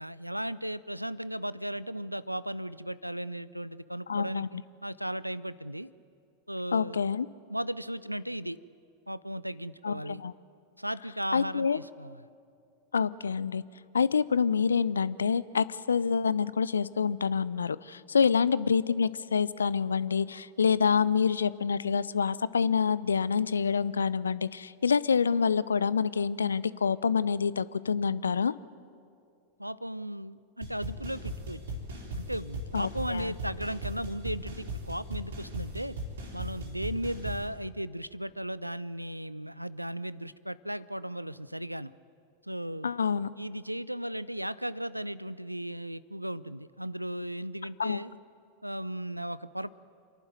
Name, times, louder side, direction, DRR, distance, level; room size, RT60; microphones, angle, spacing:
voice 1, 0.0-5.9 6.5-7.0 7.5-8.6 9.1-10.2 10.8-12.3 18.2-18.3 29.6-31.8 32.1-36.0 36.3-41.9 42.4-42.9 43.4-48.2 48.6-49.7, right 1 dB, 90° right, 19 dB, 0.4 m, -36 dB
voice 2, 4.1-4.5 6.7-7.3 9.8-10.3 11.3-11.8 12.9-13.6 13.9-28.5 32.7-33.3 42.8-43.3 47.8-48.0, left 6 dB, 70° left, 19 dB, 0.5 m, -27 dB
sound 1, 30.6-37.5, equal, 65° right, 3.8 m, -38 dB
27.5 x 11.5 x 9.4 m, 2.4 s
figure-of-eight pair, 90°, 0 cm